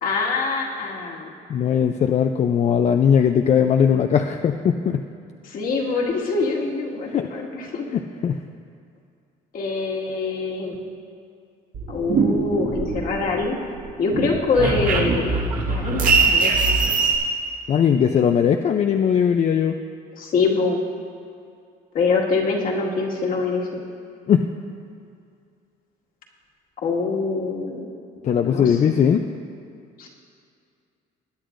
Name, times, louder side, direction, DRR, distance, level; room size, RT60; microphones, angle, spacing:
voice 1, 0.0-1.3 5.5-7.9 9.5-10.8 11.9-13.5 14.0-15.3 15.7-16.5 20.2-20.8 21.9-23.8 26.8-27.9 28.4-28.8 30.0-30.1, left 4 dB, 55° left, -2 dB, 1.9 m, -24 dB
voice 2, 1.5-5.0 7.1-7.3 7.9-8.4 17.7-19.8 24.3-24.5 28.2-29.2, left 8 dB, 40° left, 6 dB, 0.5 m, -19 dB
sound 1, 11.7-13.4 13.8-17.2, right 4 dB, 55° right, 1.6 m, -21 dB
21.0 x 9.9 x 2.6 m, 2.4 s
cardioid pair, 110°, 17 cm